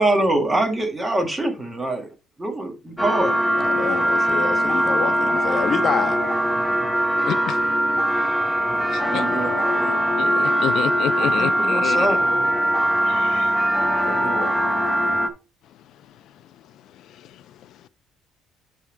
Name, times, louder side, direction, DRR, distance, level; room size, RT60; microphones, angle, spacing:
voice 1, 0.0-2.1 2.4-3.3 8.7-10.0 10.4-10.8 11.4-12.5 14.0-14.7 15.0-15.2, right 1 dB, 15° right, 1.8 m, -25 dB
sound 1, 3.0-15.3, right 1 dB, 5° left, 1.0 m, -21 dB
voice 2, 3.6-6.2, left 5 dB, 35° left, 1.1 m, -27 dB
voice 3, 7.3-7.6 8.9-9.3 10.2-12.1 13.0-13.7 13.9-14.0 16.1-16.2 16.9-17.9, left 11 dB, 65° left, 0.4 m, -30 dB
10.5 x 3.6 x 4.5 m
cardioid pair, 135°, 0 cm